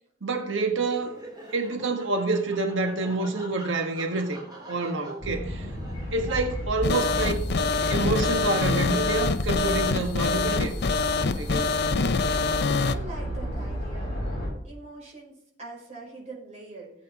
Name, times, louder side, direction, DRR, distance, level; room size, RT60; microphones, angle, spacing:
voice 1, 0.2-1.2 1.5-4.4 4.7-5.7 6.1-7.5 7.9-10.7 11.3-11.7, right 3 dB, 80° right, 1.6 m, -27 dB
Laughter, 0.7-7.3, right 1 dB, 20° right, 2.6 m, -45 dB
sound 1, 5.2-14.5, equal, 30° left, 5.7 m, -33 dB
sound 2, 6.8-13.0, left 4 dB, 60° left, 0.6 m, -25 dB
voice 2, 12.8-14.2 14.6-17.0, right 3 dB, 35° right, 5.6 m, -43 dB
17.0 x 8.3 x 3.7 m
head